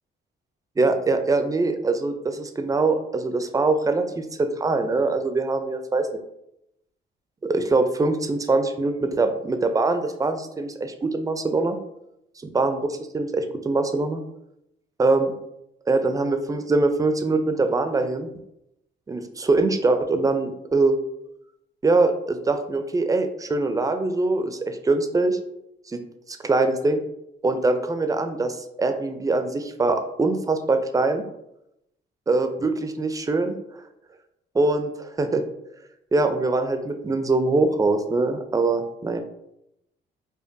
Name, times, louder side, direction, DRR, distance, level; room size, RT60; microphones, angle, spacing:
voice 1, 0.8-6.1 7.4-11.8 12.4-12.8 13.1-14.2 15.0-15.3 15.9-18.3 19.1-21.0 21.8-25.4 25.9-26.0 26.3-27.0 27.4-31.2 32.3-33.6 34.5-35.4 36.1-39.2, right 3 dB, 15° right, 8 dB, 0.4 m, -23 dB
5.1 x 2.2 x 2.6 m, 0.82 s
cardioid pair, 90°, 20 cm